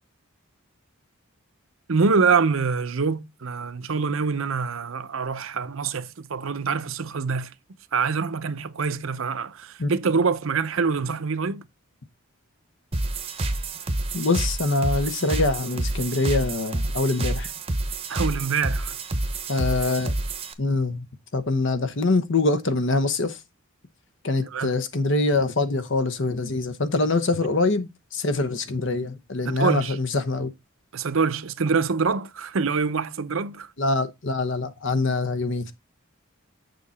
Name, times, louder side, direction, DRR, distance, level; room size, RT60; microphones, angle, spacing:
voice 1, 1.9-7.5 7.9-11.6 18.1-19.0 24.5-24.7 29.5-30.0 30.9-33.7, right 5 dB, 70° right, 0.7 m, -25 dB
sound 1, 12.9-20.5, right 2 dB, 25° right, 0.8 m, -28 dB
voice 2, 14.1-17.5 19.5-20.1 20.6-21.1 21.3-23.4 24.2-30.5 33.8-35.7, left 3 dB, 60° left, 1.0 m, -24 dB
6.9 x 6.4 x 4.1 m
head